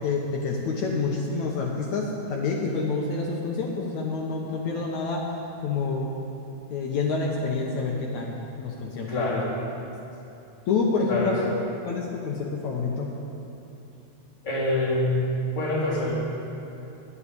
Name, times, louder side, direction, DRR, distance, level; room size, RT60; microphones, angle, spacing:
voice 1, 0.0-5.3 5.6-6.1 6.7-9.4 10.7-11.5 11.9-13.1, left 4 dB, 80° left, -2 dB, 1.6 m, -28 dB
voice 2, 9.1-9.5 11.1-11.4 14.4-15.3 15.5-16.2, left 2 dB, 10° left, -8 dB, 3.0 m, -25 dB
11.0 x 8.5 x 9.7 m, 2.8 s
omnidirectional pair, 4.9 m